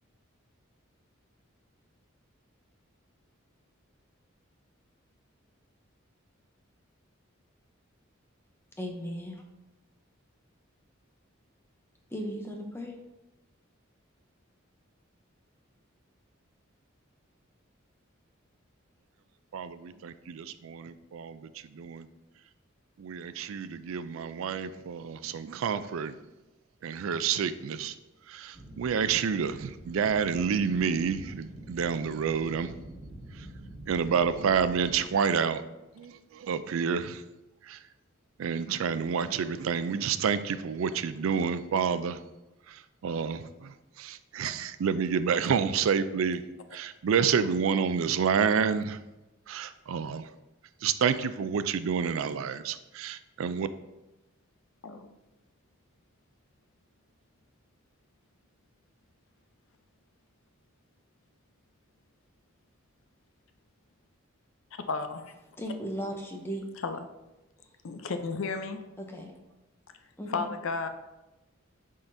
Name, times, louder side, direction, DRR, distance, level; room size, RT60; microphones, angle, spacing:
voice 1, 8.8-9.4 12.1-13.0 65.6-66.6 69.0-69.3 70.2-70.5, equal, 10° left, 2 dB, 0.6 m, -36 dB
voice 2, 19.5-22.1 23.0-26.1 26.8-28.0 28.3-32.7 33.3-33.5 33.9-35.6 36.0-37.2 37.6-37.8 38.4-42.2 42.7-46.4 46.7-49.0 49.5-50.3 50.8-53.7, right 6 dB, 80° right, 13 dB, 0.4 m, -29 dB
sound 1, 28.5-35.0, right 1 dB, 40° right, 1.3 m, -46 dB
voice 3, 64.9-65.4 66.8-67.0 67.8-68.8 70.3-70.9, left 4 dB, 75° left, 8 dB, 0.6 m, -33 dB
10.0 x 3.7 x 2.6 m, 1.0 s
head